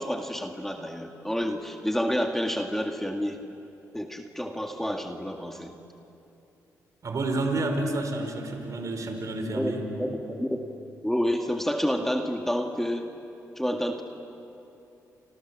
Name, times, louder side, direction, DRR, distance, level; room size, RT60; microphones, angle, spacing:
voice 1, 0.0-3.4 3.9-5.7 9.5-9.7 10.0-10.6 11.0-13.1 13.6-14.0, equal, 5° left, 4 dB, 2.1 m, -29 dB
voice 2, 7.0-9.9, right 2 dB, 55° right, 5 dB, 4.8 m, -29 dB
29.5 x 27.0 x 7.6 m, 2.9 s
supercardioid pair, 60°, 7 cm